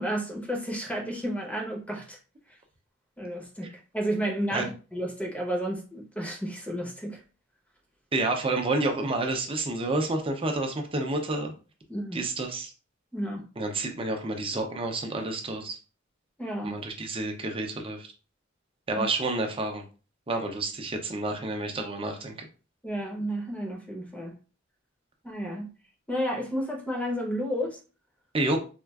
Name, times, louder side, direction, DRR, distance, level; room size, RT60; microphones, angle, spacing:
voice 1, 0.0-2.2 3.2-3.7 3.9-7.2 11.9-12.2 13.1-13.4 16.4-16.8 18.9-19.1 22.8-24.3 25.2-25.7 26.1-27.8, equal, 5° left, 0.7 m, -31 dB
voice 2, 8.1-11.5 12.1-12.7 13.6-15.8 16.6-18.1 18.9-19.8 20.3-22.5 28.3-28.6, right 2 dB, 30° right, 0.6 m, -29 dB
4.3 x 2.4 x 2.3 m
head